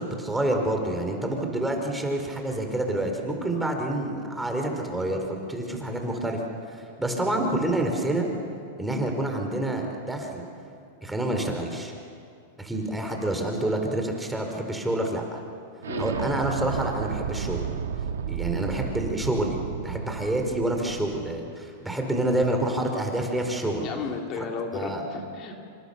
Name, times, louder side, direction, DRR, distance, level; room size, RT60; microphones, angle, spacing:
voice 1, 0.0-6.4 6.7-8.3 8.8-10.4 11.0-11.9 12.6-15.4 16.0-17.6 18.3-23.9 24.4-24.5 24.7-25.0, right 1 dB, 5° right, 2 dB, 4.6 m, -28 dB
Explosion, 15.8-21.3, right 7 dB, 85° right, 1.9 m, -32 dB
voice 2, 23.8-25.6, left 5 dB, 40° left, 2 dB, 3.1 m, -33 dB
26.5 x 25.0 x 6.9 m, 2.4 s
hypercardioid pair, 115°, 0 cm